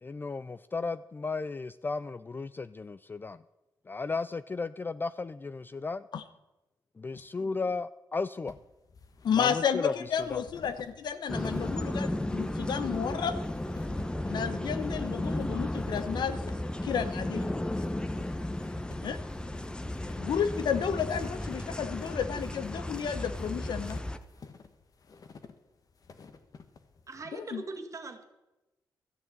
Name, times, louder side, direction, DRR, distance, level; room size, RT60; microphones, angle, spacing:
voice 1, 0.0-3.4 3.9-6.0 7.0-8.6 9.4-10.4, left 4 dB, 25° left, 15 dB, 0.4 m, -35 dB
sound 1, 8.5-27.2, left 5 dB, 50° left, 1.3 m, -51 dB
voice 2, 9.2-13.3 14.2-16.4 16.8-17.5 19.0-19.2 20.2-24.0 27.3-27.6, left 7 dB, 75° left, 12 dB, 1.0 m, -32 dB
sound 2, 11.3-24.2, left 1 dB, 10° left, 1.0 m, -34 dB
voice 3, 27.1-28.2, right 3 dB, 45° right, 6 dB, 1.9 m, -41 dB
13.5 x 6.6 x 8.8 m, 1.0 s
cardioid pair, 75°, 8 cm